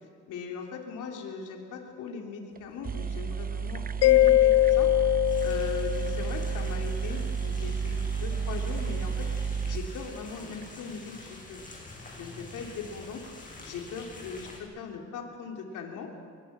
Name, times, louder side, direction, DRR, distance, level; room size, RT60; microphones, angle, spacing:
voice 1, 0.3-4.9 5.4-9.3 9.7-11.6 12.2-13.2 13.6-16.1, left 5 dB, 85° left, 1 dB, 3.7 m, -39 dB
sound 1, 2.6-2.7 2.8-10.7, right 6 dB, 30° right, 0.7 m, -32 dB
Mallet percussion, 4.0-6.6, left 15 dB, 55° left, 0.5 m, -22 dB
sound 2, 5.2-14.6, left 2 dB, 25° left, 6.9 m, -46 dB
26.5 x 22.5 x 6.2 m, 2.1 s
cardioid pair, 90°, 30 cm